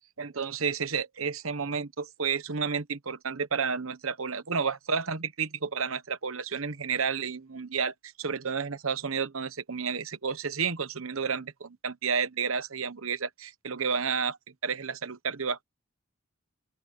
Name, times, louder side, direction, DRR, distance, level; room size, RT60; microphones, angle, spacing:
voice 1, 0.2-14.4 14.6-15.6, right 5 dB, 80° right, 1.1 m, -31 dB
open air
head